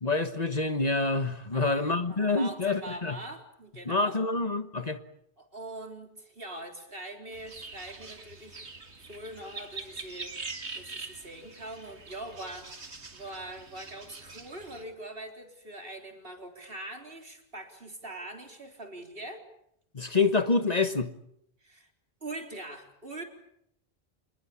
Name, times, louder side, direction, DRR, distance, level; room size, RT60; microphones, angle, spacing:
voice 1, 0.0-3.2 3.9-5.0 19.9-21.1, left 3 dB, 40° left, 9 dB, 1.4 m, -27 dB
voice 2, 1.5-4.2 5.4-12.8 13.1-19.5 21.6-21.9 22.2-23.2, right 2 dB, 60° right, 3 dB, 4.3 m, -43 dB
sound 1, 7.3-14.8, right 4 dB, 90° right, 2.6 m, -44 dB
27.5 x 20.5 x 8.5 m, 0.73 s
omnidirectional pair, 1.1 m